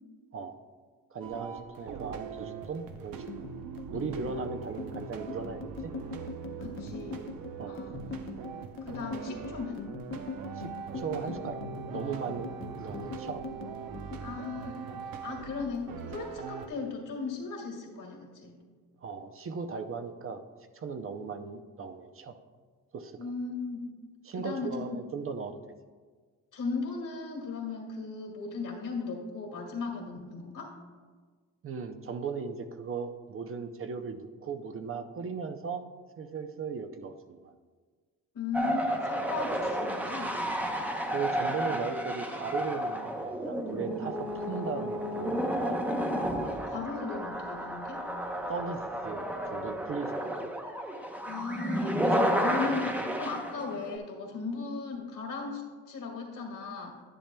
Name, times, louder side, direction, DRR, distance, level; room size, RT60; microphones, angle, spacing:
voice 1, 1.1-3.2 3.9-5.9 7.6-7.8 10.6-10.7 10.9-11.6 11.9-13.4 19.0-20.4 20.7-22.4 22.9-23.3 24.2-25.5 31.6-35.8 36.2-37.5 40.4-40.7 41.1-45.8 48.5-50.5, right 5 dB, 40° right, 7 dB, 0.5 m, -37 dB
sound 1, 1.2-16.7, right 7 dB, 80° right, 0.8 m, -42 dB
sound 2, 3.1-15.7 15.9-17.0 17.3-17.6 17.9-18.6, left 4 dB, 35° left, 0.8 m, -42 dB
voice 2, 6.6-7.2 7.7-8.0 8.8-9.8 13.0-13.1 14.2-14.9 15.2-18.6 23.2-23.9 24.4-24.8 26.5-30.7 38.3-40.4 41.6-41.7 46.5-48.0 51.2-55.6 55.9-57.0, left 4 dB, 65° left, 0 dB, 2.0 m, -37 dB
sound 3, 38.5-54.0, equal, 5° right, 0.7 m, -32 dB
10.5 x 10.0 x 2.2 m, 1.5 s
cardioid pair, 135°, 34 cm